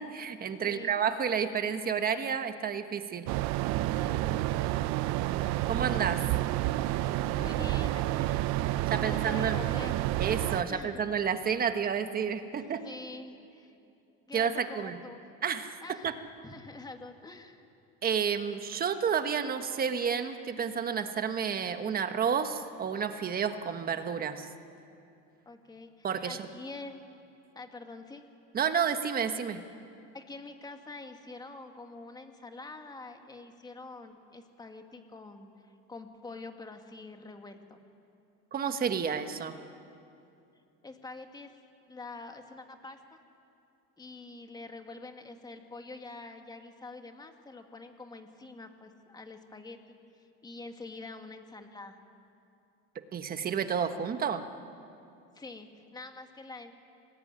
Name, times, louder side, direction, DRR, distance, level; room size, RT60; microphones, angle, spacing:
voice 1, 0.0-3.3 5.7-6.2 8.9-9.6 10.2-12.8 14.3-15.0 15.4-15.8 16.0-16.1 18.0-24.5 26.0-26.5 28.5-29.6 38.5-39.6 53.1-54.4, right 7 dB, 30° right, 8 dB, 1.4 m, -30 dB
voice 2, 0.6-1.0 4.0-4.7 7.3-8.4 8.9-10.1 10.7-11.0 12.8-13.8 14.3-15.2 15.8-16.1 16.4-17.7 25.5-27.1 27.6-28.2 30.1-37.8 40.8-41.6 41.9-43.2 44.0-49.8 50.1-52.0 55.3-56.7, left 3 dB, 10° left, 5 dB, 1.8 m, -46 dB
sound 1, 3.3-10.6, right 15 dB, 60° right, 0.8 m, -29 dB
25.5 x 19.5 x 9.8 m, 2.6 s
cardioid pair, 150°, 32 cm